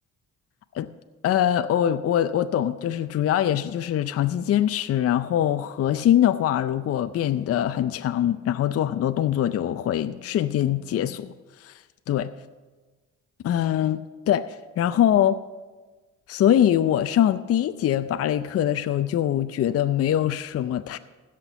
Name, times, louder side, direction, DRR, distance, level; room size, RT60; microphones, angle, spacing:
voice 1, 1.2-11.3 11.6-11.7 12.1-12.3 13.4-15.4 16.3-21.0, left 11 dB, 50° left, 0.5 m, -23 dB
16.0 x 6.0 x 6.8 m
cardioid pair, 90°, 30 cm